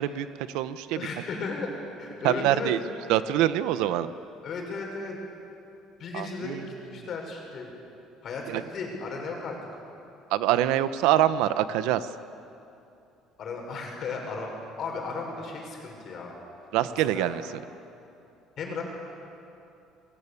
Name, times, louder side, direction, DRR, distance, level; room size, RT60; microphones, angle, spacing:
voice 1, 0.0-1.1 2.2-2.8 3.1-4.1 6.1-6.7 8.5-8.6 10.3-12.1 16.7-17.6, right 12 dB, 75° right, 13 dB, 1.0 m, -25 dB
voice 2, 1.0-1.7 2.0-2.7 4.4-5.2 6.0-6.6 6.8-7.7 8.2-9.5 13.4-14.5 14.8-16.3 17.0-17.3 18.6-18.8, left 4 dB, 35° left, 1 dB, 5.9 m, -35 dB
29.5 x 22.5 x 8.5 m, 2.7 s
cardioid pair, 175°, 0 cm